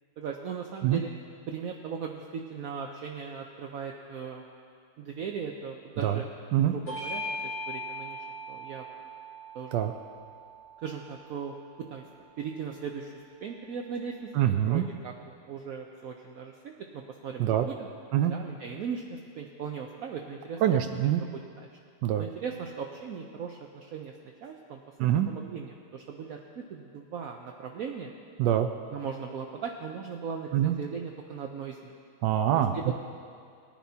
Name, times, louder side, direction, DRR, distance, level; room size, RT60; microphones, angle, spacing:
voice 1, 0.2-1.1 1.5-4.4 5.0-6.2 6.6-8.9 9.5-9.8 10.8-11.5 11.9-12.0 12.4-13.1 13.4-17.9 18.2-20.6 21.2-21.7 22.2-24.1 24.4-28.1 28.9-31.9 32.7-32.9, right 6 dB, 65° right, 1 dB, 1.0 m, -38 dB
Bell / Doorbell, 6.9-11.7, left 1 dB, 85° left, 3.8 m, -40 dB
voice 2, 14.4-14.8 17.4-17.7 18.1-18.3 20.6-21.2 22.0-22.2 25.0-25.3 28.4-28.7 30.5-30.8 32.2-32.9, right 11 dB, 90° right, 6 dB, 1.3 m, -24 dB
19.5 x 10.5 x 2.8 m, 2.3 s
omnidirectional pair, 1.9 m